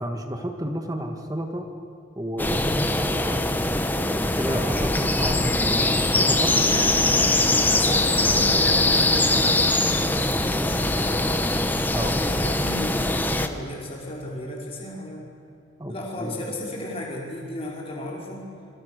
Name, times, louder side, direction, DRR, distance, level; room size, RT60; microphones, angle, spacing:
voice 1, 0.0-1.7 2.2-3.4 3.9-7.0 11.9-12.2 15.8-15.9 16.2-16.4, equal, 15° right, 4 dB, 2.0 m, -31 dB
sound 1, 2.4-13.5, left 2 dB, 10° left, 1.1 m, -22 dB
voice 2, 6.6-11.4 12.0-15.3 15.9-18.5, left 1 dB, 30° left, -2 dB, 5.5 m, -34 dB
26.5 x 26.0 x 6.9 m, 2.5 s
head